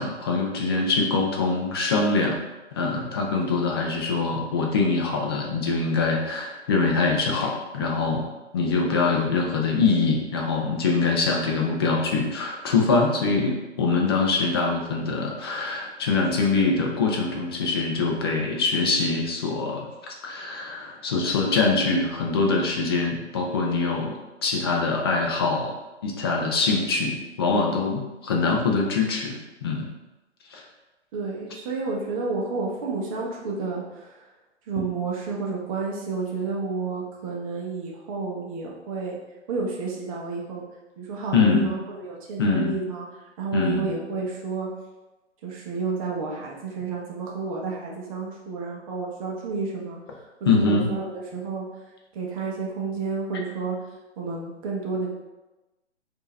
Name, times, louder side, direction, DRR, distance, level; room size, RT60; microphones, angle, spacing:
voice 1, 0.0-2.4 2.7-8.3 8.5-24.1 24.4-25.7 26.0-29.9 30.5-30.6 41.3-41.7 42.4-42.7 43.5-43.9 50.5-50.9, left 4 dB, 20° left, 0 dB, 0.4 m, -24 dB
voice 2, 31.1-34.2 34.7-39.2 39.5-40.6 41.0-43.1 43.4-44.7 45.4-50.0 50.4-51.7 52.1-53.8 54.2-55.1, right 4 dB, 30° right, -2 dB, 0.9 m, -30 dB
4.6 x 2.8 x 3.2 m, 1.1 s
hypercardioid pair, 140°, 36 cm